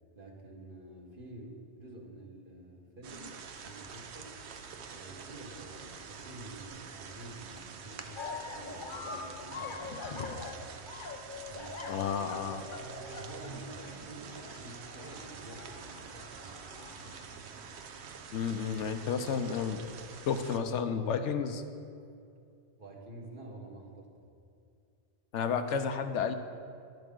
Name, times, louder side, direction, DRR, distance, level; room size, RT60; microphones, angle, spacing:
voice 1, 0.1-4.4 4.8-10.3 11.5-12.0 12.4-12.8 13.2-17.3 22.8-24.3, right 1 dB, 50° right, -1 dB, 1.6 m, -49 dB
sound 1, 3.0-20.6, right 6 dB, 65° right, 0.9 m, -47 dB
sound 2, 8.2-17.4, left 4 dB, 50° left, 0.8 m, -44 dB
voice 2, 11.9-12.6 18.3-19.8 20.2-21.6 25.3-26.3, left 6 dB, 80° left, 8 dB, 1.0 m, -31 dB
12.0 x 10.5 x 3.8 m, 2.4 s
omnidirectional pair, 1.2 m